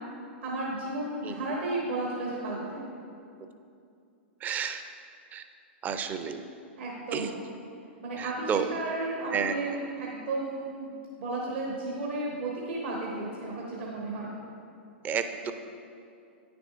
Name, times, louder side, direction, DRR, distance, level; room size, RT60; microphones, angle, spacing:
voice 1, 0.4-2.9 6.8-7.4 8.0-14.4, right 2 dB, 70° right, -3 dB, 1.2 m, -33 dB
voice 2, 4.4-4.8 5.3-5.4 5.8-6.4 7.1-7.3 8.2-8.7 9.3-9.5 15.0-15.5, right 7 dB, 25° right, 8 dB, 0.5 m, -30 dB
9.4 x 6.8 x 2.5 m, 2.5 s
hypercardioid pair, 105°, 6 cm